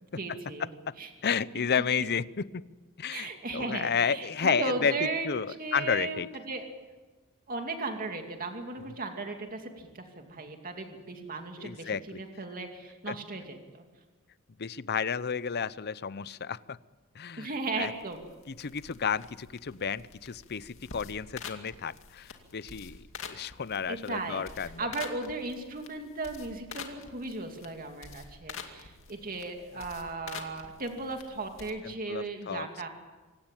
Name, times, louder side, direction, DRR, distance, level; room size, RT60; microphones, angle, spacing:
voice 1, 0.2-0.7 1.0-1.1 3.1-5.3 5.6-6.6 7.5-13.8 17.4-18.2 23.9-32.9, right 3 dB, 40° right, 4 dB, 2.6 m, -36 dB
voice 2, 1.2-2.6 3.0-4.9 5.2-6.3 11.6-12.2 13.1-13.2 14.6-16.8 17.1-17.5 17.8-17.9 18.5-24.9 29.7-29.8 31.8-32.7, left 6 dB, 50° left, 18 dB, 0.7 m, -32 dB
sound 1, 17.8-31.7, left 5 dB, 65° left, 2.4 m, -47 dB
26.0 x 17.0 x 9.1 m, 1.3 s
head